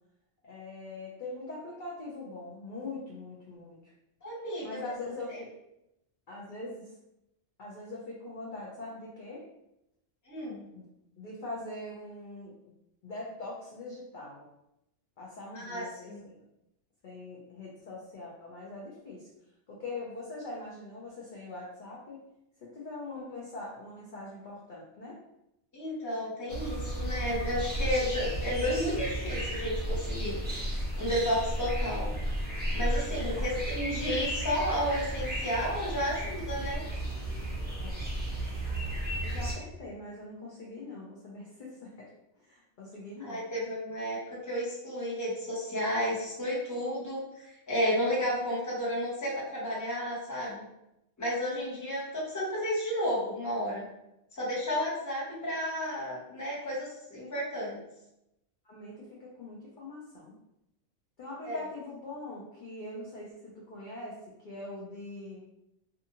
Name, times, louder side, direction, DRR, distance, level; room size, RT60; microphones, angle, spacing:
voice 1, 0.4-3.9 4.6-5.5 6.3-7.0 7.6-9.4 10.7-10.8 11.2-12.5 13.0-14.5 15.2-16.4 17.0-19.3 19.7-22.2 22.6-25.2 33.1-33.4 37.8-38.0 39.2-42.1 42.4-43.4 58.6-60.3 61.2-65.4, left 2 dB, 55° left, -5 dB, 0.6 m, -42 dB
voice 2, 4.2-4.8 10.3-10.6 15.5-16.2 25.7-30.4 31.0-32.1 32.7-36.8 43.2-47.2 47.7-50.6 51.2-53.8 54.3-57.8 61.5-61.6, equal, 20° left, -6 dB, 0.7 m, -32 dB
sound 1, 26.5-39.5, right 1 dB, 15° right, 0.4 m, -33 dB
2.5 x 2.4 x 2.8 m, 0.87 s
omnidirectional pair, 1.3 m